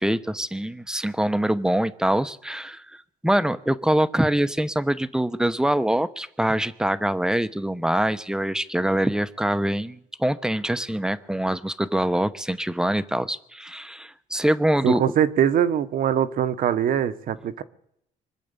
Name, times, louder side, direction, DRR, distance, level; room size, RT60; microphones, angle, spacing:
voice 1, 0.0-2.8 3.2-15.0, right 1 dB, 5° right, 13 dB, 0.9 m, -24 dB
voice 2, 14.8-17.6, right 9 dB, 65° right, 12 dB, 1.2 m, -22 dB
24.5 x 8.4 x 6.9 m, 0.75 s
cardioid pair, 90°, 15 cm